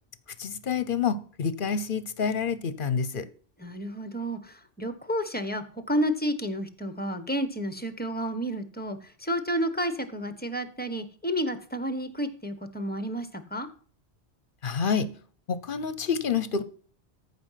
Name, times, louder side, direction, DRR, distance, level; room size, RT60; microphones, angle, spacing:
voice 1, 0.4-3.3 14.6-15.1 15.5-16.6, left 6 dB, 50° left, 1.0 m, -28 dB
voice 2, 3.6-13.7, equal, 10° left, 1.1 m, -31 dB
14.0 x 5.6 x 5.7 m
omnidirectional pair, 1.2 m